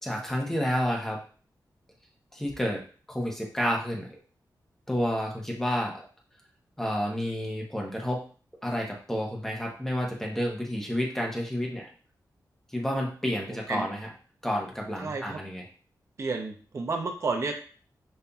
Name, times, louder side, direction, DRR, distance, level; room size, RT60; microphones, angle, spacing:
voice 1, 0.0-1.2 2.3-2.8 3.1-4.1 4.9-6.1 6.8-8.2 8.6-11.9 12.7-14.1 14.4-15.6, equal, 5° left, -1 dB, 0.8 m, -30 dB
voice 2, 13.5-13.9 15.0-15.4 16.2-17.5, right 4 dB, 45° right, 3 dB, 0.6 m, -31 dB
5.3 x 2.6 x 2.3 m, 0.41 s
wide cardioid pair, 180°, 7 cm